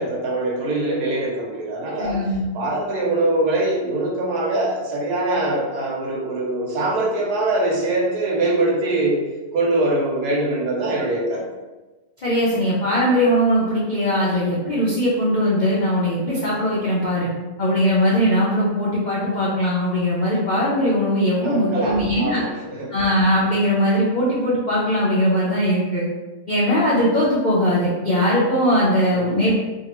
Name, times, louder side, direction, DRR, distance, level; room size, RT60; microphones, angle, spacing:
voice 1, 0.0-2.2 2.5-11.5 21.4-22.9 29.1-29.3, right 2 dB, 85° right, -2 dB, 1.3 m, -23 dB
voice 2, 2.0-2.4 12.2-17.3 17.6-22.4 22.9-26.1 26.5-29.5, equal, 90° left, -7 dB, 0.4 m, -20 dB
2.8 x 2.7 x 2.9 m, 1.2 s
omnidirectional pair, 1.6 m